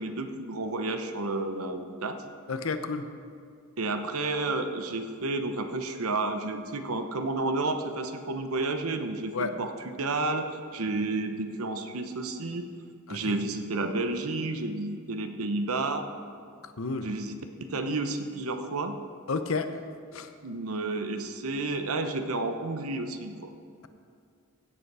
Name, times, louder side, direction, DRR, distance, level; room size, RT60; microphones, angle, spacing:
voice 1, 0.0-2.2 3.8-10.5 10.7-12.7 13.1-16.1 17.0-19.0 20.4-23.3, right 2 dB, 90° right, 7 dB, 1.0 m, -31 dB
voice 2, 2.5-3.1 9.3-9.5 13.1-13.2 16.8-17.1 19.3-19.7 20.1-20.3, left 4 dB, 75° left, 9 dB, 0.7 m, -30 dB
16.0 x 8.0 x 4.8 m, 2.3 s
head